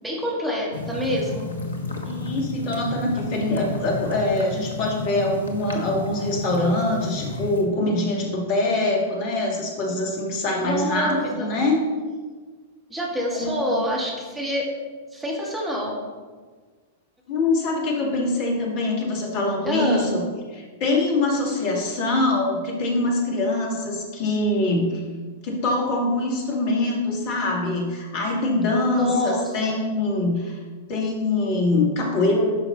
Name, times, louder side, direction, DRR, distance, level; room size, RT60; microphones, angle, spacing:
voice 1, 0.0-1.5 10.6-11.6 12.9-14.7 15.1-16.0 19.6-20.1 28.9-29.8, equal, 10° right, -4 dB, 2.6 m, -26 dB
sound 1, 0.7-7.6, left 1 dB, 75° left, 1.2 m, -32 dB
voice 2, 2.0-11.8 13.3-13.8 17.3-20.2 20.5-25.0 25.4-30.6 30.9-32.5, left 2 dB, 45° left, -1 dB, 2.5 m, -24 dB
11.0 x 5.9 x 4.2 m, 1.5 s
figure-of-eight pair, 95°, 0 cm